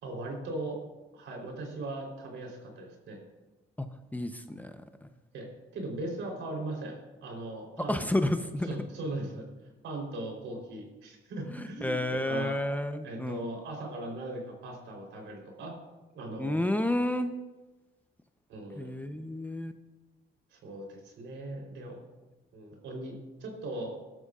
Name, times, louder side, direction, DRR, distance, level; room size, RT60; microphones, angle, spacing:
voice 1, 0.0-0.8 1.1-3.2 5.3-8.0 8.6-9.4 9.8-12.6 13.0-15.7 16.1-16.7 18.5-18.9 20.5-22.0 22.5-23.9, right 2 dB, 80° right, 0 dB, 3.9 m, -39 dB
voice 2, 4.1-4.7 5.0-5.1 7.9-8.7 11.5-13.4 16.4-17.3 18.8-19.7, left 1 dB, 10° left, 7 dB, 0.8 m, -30 dB
18.5 x 12.5 x 2.5 m, 1.1 s
cardioid pair, 90°, 20 cm